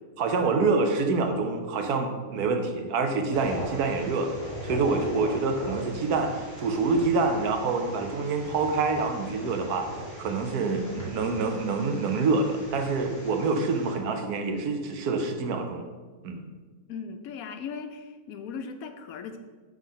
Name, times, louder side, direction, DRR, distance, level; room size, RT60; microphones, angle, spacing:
voice 1, 0.2-4.3 4.6-9.9 10.2-15.8 16.2-16.4, right 4 dB, 80° right, 5 dB, 1.3 m, -26 dB
sound 1, 3.3-13.9, right 1 dB, 10° left, 2.2 m, -40 dB
voice 2, 16.9-19.4, left 6 dB, 70° left, 7 dB, 1.0 m, -38 dB
5.7 x 4.9 x 5.6 m, 1.4 s
omnidirectional pair, 1.6 m